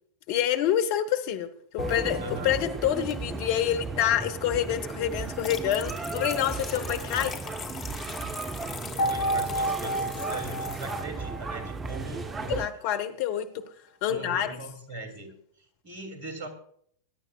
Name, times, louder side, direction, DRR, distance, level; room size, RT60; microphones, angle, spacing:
voice 1, 0.3-1.5 1.7-7.3 12.5-13.5 14.0-14.6, left 10 dB, 45° left, 9 dB, 1.1 m, -27 dB
sound 1, 1.8-3.3 9.0-12.3, equal, 65° left, 4.7 m, -32 dB
sound 2, 1.8-12.7, right 4 dB, 20° right, 0.7 m, -35 dB
voice 2, 2.2-2.5 8.9-12.5 14.1-15.3 15.8-16.5, right 2 dB, 50° right, 6 dB, 2.8 m, -40 dB
sound 3, 5.2-11.0, left 7 dB, 25° left, 1.5 m, -41 dB
20.5 x 10.5 x 2.4 m, 0.63 s
figure-of-eight pair, 90°, 0 cm